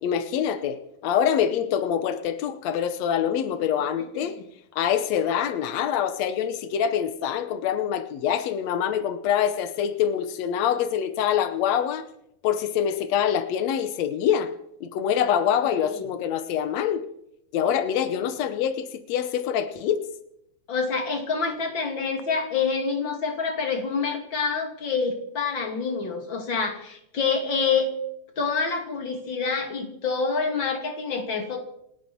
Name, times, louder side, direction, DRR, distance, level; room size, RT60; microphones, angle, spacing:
voice 1, 0.0-4.4 4.7-12.0 12.4-14.5 14.8-17.0 17.5-20.0, left 9 dB, 85° left, 10 dB, 1.5 m, -25 dB
voice 2, 20.7-27.9 28.4-31.6, left 5 dB, 35° left, 3 dB, 3.0 m, -27 dB
28.5 x 11.0 x 4.5 m, 0.77 s
omnidirectional pair, 4.4 m